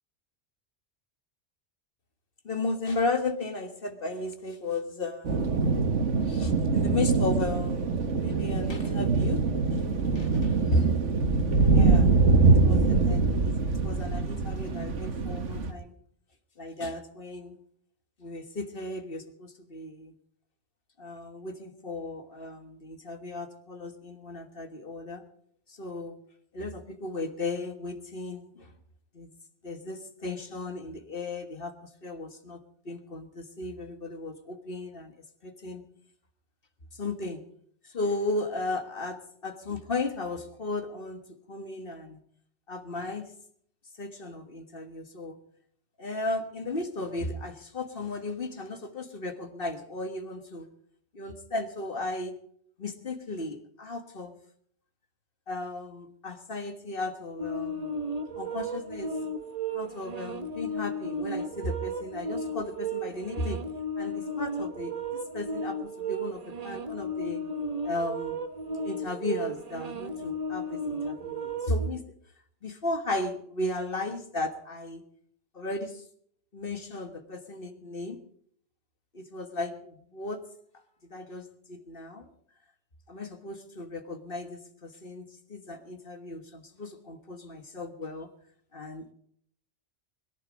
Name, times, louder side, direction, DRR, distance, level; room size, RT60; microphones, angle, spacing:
voice 1, 2.4-5.7 6.2-9.9 10.1-10.9 11.7-12.1 12.6-15.9 16.6-17.6 18.2-20.1 21.0-25.2 25.7-26.2 26.5-28.7 29.1-29.3 29.6-35.9 36.9-37.4 37.8-42.2 42.7-43.3 44.0-45.4 46.0-50.7 51.1-52.3 52.8-54.4 55.5-57.9 58.4-59.2 59.7-63.6 64.0-65.0 65.3-67.5 67.8-68.4 68.8-72.0 72.6-75.1 75.5-76.0 76.5-78.2 79.1-80.4 81.0-82.3 83.1-88.3 88.7-89.1, left 2 dB, 50° left, 8 dB, 1.7 m, -35 dB
sound 1, 5.2-15.7, right 3 dB, 90° right, 1.7 m, -24 dB
sound 2, 57.4-71.9, right 1 dB, 35° right, 1.1 m, -34 dB
21.5 x 11.0 x 5.2 m, 0.65 s
omnidirectional pair, 1.2 m